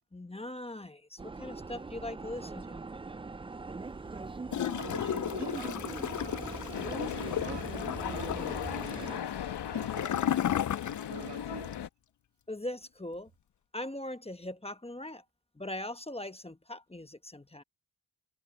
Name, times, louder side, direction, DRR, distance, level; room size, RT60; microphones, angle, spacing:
voice 1, 0.1-2.8 12.5-13.3 13.7-15.2 15.6-17.6, left 1 dB, 15° left, 1.1 m, -40 dB
sound 1, 1.2-9.2, right 3 dB, 15° right, 0.4 m, -41 dB
voice 2, 3.9-4.2 4.7-7.7 8.0-8.4 8.8-9.3 9.7-10.6 11.1-11.7, right 6 dB, 80° right, 2.6 m, -46 dB
Gurgling / Toilet flush, 4.5-11.3 11.6-11.7, left 10 dB, 50° left, 0.5 m, -34 dB
sound 2, 6.7-11.9, left 9 dB, 85° left, 1.1 m, -38 dB
cardioid pair, 65°, 40 cm